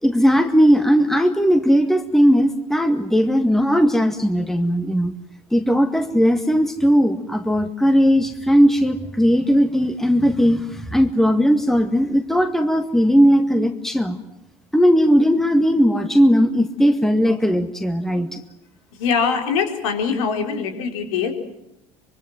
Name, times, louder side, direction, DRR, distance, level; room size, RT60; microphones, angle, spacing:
voice 1, 0.0-5.1 5.5-14.2 14.7-18.4, equal, ahead, 8 dB, 1.9 m, -17 dB
voice 2, 19.0-21.3, left 6 dB, 70° left, 5 dB, 4.5 m, -22 dB
25.0 x 23.5 x 7.6 m, 0.85 s
hypercardioid pair, 70°, 17 cm